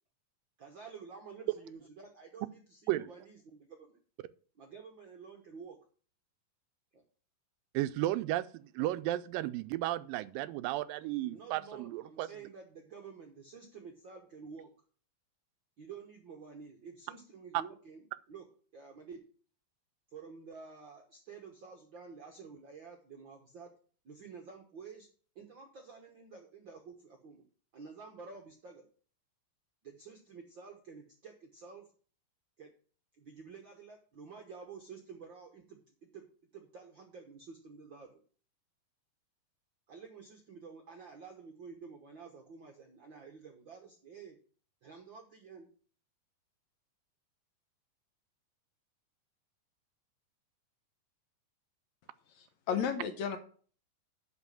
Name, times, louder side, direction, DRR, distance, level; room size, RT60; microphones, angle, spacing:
voice 1, 0.6-4.0 4.6-5.8 6.9-7.0 11.3-14.7 15.8-18.4 18.7-19.2 20.1-23.7 24.0-25.1 25.3-27.4 27.7-28.9 29.8-31.9 32.6-32.7 33.2-36.3 36.5-38.2 39.9-44.4 44.8-45.7, right 5 dB, 65° right, 1.1 m, -50 dB
voice 2, 7.7-12.3 17.5-17.6, right 15 dB, 90° right, 2.3 m, -33 dB
voice 3, 52.4-53.4, left 7 dB, 70° left, 1.9 m, -33 dB
10.5 x 4.2 x 7.4 m
omnidirectional pair, 3.9 m